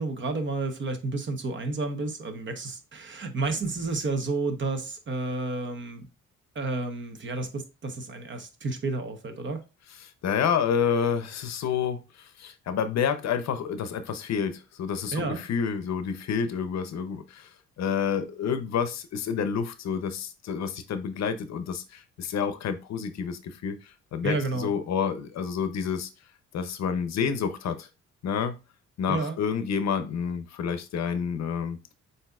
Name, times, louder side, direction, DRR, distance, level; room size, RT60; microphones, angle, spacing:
voice 1, 0.0-6.1 6.5-9.6 15.1-15.4 24.2-24.7 29.1-29.4, right 3 dB, 40° right, 0.9 m, -31 dB
voice 2, 10.0-17.5 17.8-26.1 26.5-27.9 28.2-28.5 29.0-31.8, left 7 dB, 60° left, 0.7 m, -29 dB
7.4 x 2.7 x 2.3 m
cardioid pair, 90°, 30 cm